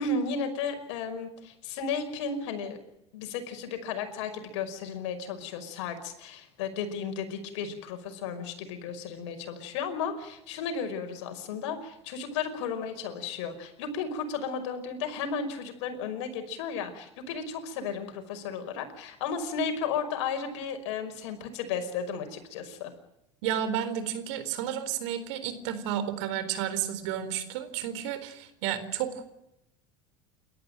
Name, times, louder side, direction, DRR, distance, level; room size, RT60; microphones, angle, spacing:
voice 1, 0.0-2.8 3.1-22.9, left 5 dB, 70° left, 7 dB, 5.5 m, -34 dB
voice 2, 23.4-29.2, right 10 dB, 70° right, 11 dB, 4.1 m, -32 dB
29.0 x 13.5 x 9.0 m, 0.86 s
hypercardioid pair, 85°, 15 cm